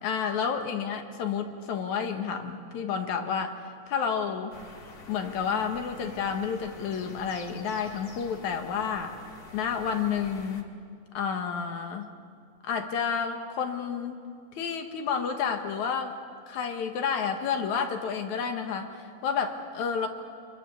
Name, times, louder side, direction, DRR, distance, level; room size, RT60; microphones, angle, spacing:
voice 1, 0.0-3.6 3.9-4.5 5.1-9.2 9.5-10.7 11.1-12.1 12.6-14.2 14.6-16.2 16.5-18.9 19.2-20.1, left 6 dB, 75° left, 5 dB, 2.8 m, -30 dB
sound 1, 4.5-10.6, left 3 dB, 40° left, 1.7 m, -48 dB
26.0 x 21.5 x 7.0 m, 2.2 s
omnidirectional pair, 3.4 m